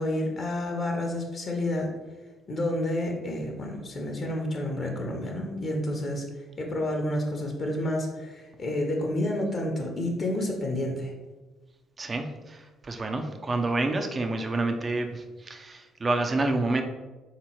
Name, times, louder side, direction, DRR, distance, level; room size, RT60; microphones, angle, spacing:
voice 1, 0.0-1.9 2.5-11.1, left 1 dB, 45° left, 1 dB, 0.8 m, -30 dB
voice 2, 12.0-16.8, right 2 dB, 35° right, 5 dB, 0.5 m, -28 dB
3.7 x 2.9 x 4.4 m, 1.2 s
hypercardioid pair, 55°, 0 cm